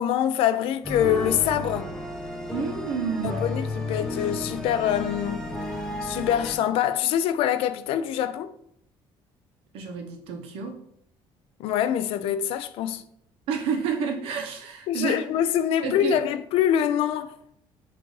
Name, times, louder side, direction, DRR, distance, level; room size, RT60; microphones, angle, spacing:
voice 1, 0.0-1.9 3.2-5.4 6.0-8.5 11.6-13.0 14.9-17.3, left 10 dB, 75° left, 0.3 m, -24 dB
sound 1, 0.8-6.6, left 2 dB, 5° left, 0.6 m, -32 dB
voice 2, 2.5-3.5 9.7-10.8 13.5-15.2 15.8-16.2, right 6 dB, 80° right, 0.8 m, -30 dB
5.8 x 2.5 x 3.1 m
cardioid pair, 140°, 10 cm